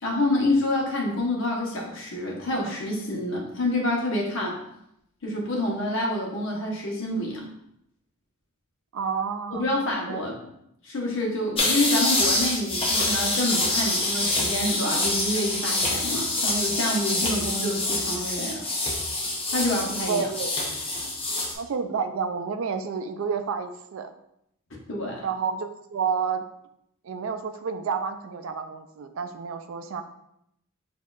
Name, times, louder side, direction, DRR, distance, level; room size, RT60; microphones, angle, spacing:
voice 1, 0.0-4.5 5.2-7.4 9.6-10.4 10.8-18.6 19.5-20.3 24.9-25.2, left 1 dB, 65° left, -2 dB, 1.1 m, -27 dB
voice 2, 8.9-9.7 10.1-10.2 20.1-20.5 21.6-24.1 25.2-26.4 27.0-30.0, right 6 dB, 75° right, 8 dB, 0.4 m, -30 dB
sound 1, 11.6-21.5, left 2 dB, 25° left, 0.7 m, -26 dB
6.3 x 2.8 x 2.4 m, 0.77 s
head